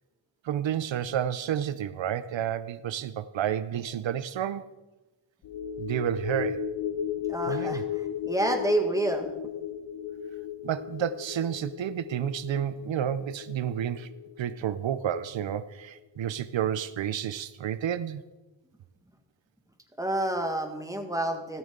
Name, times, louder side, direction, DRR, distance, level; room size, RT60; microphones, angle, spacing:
voice 1, 0.4-4.7 5.8-6.6 7.5-7.8 10.6-14.1 14.4-18.2, right 9 dB, 85° right, 14 dB, 0.6 m, -30 dB
sound 1, 5.4-16.0 16.4-16.5, left 9 dB, 90° left, 0.8 m, -36 dB
voice 2, 7.3-7.9 8.2-9.3 20.0-21.6, right 1 dB, 5° right, 4 dB, 1.9 m, -28 dB
14.0 x 13.5 x 3.8 m, 1.1 s
wide cardioid pair, 85°, 44 cm